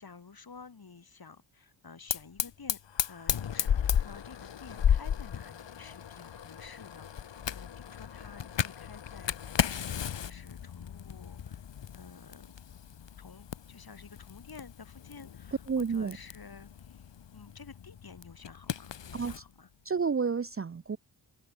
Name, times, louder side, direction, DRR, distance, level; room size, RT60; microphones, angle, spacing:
voice 1, 0.0-2.8 3.1-11.6 11.9-12.5 13.2-19.7, left 5 dB, 50° left, 5.5 m, -51 dB
Fire, 2.1-19.4, left 8 dB, 70° left, 1.5 m, -35 dB
voice 2, 15.7-16.2 19.1-19.3 19.8-21.0, right 5 dB, 30° right, 0.7 m, -30 dB
open air
cardioid pair, 70°, 45 cm